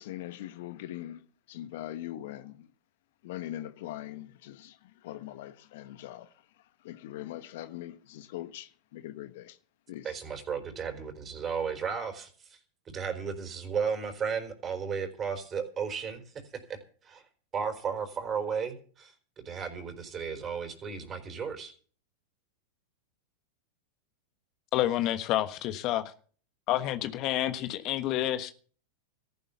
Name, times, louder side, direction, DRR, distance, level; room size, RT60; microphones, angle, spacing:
voice 1, 0.0-2.7 3.2-9.6 9.9-10.2, left 13 dB, 65° left, 1.2 m, -42 dB
voice 2, 10.0-12.6 12.9-16.2 17.0-17.2 17.5-21.7, right 6 dB, 25° right, 4.2 m, -34 dB
voice 3, 24.7-26.0 26.7-28.5, left 13 dB, 45° left, 1.3 m, -29 dB
14.5 x 11.0 x 7.1 m
hypercardioid pair, 115°, 0 cm